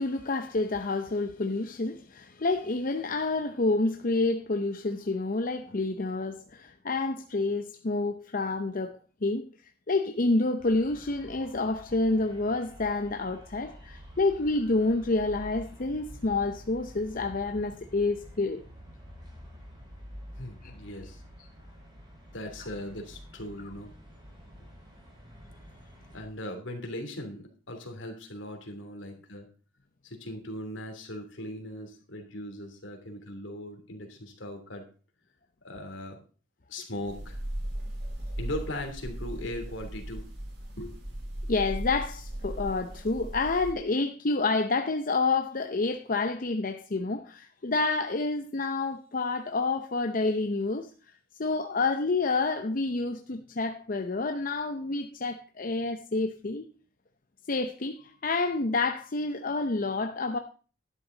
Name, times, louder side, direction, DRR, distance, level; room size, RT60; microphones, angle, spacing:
voice 1, 0.0-9.4 9.9-18.6 20.6-20.7 41.5-50.9 51.4-56.6 57.5-60.4, left 3 dB, 45° left, 0.7 m, -28 dB
sound 1, 10.6-26.2, equal, 25° right, 4.6 m, -48 dB
voice 2, 20.4-21.2 22.3-23.9 26.1-29.5 30.0-34.8 35.6-36.2 36.7-37.4 38.4-40.3 40.8-40.9, left 1 dB, 70° left, 3.0 m, -39 dB
sound 2, 37.1-43.7, right 1 dB, 60° right, 3.9 m, -37 dB
12.0 x 10.5 x 4.0 m
head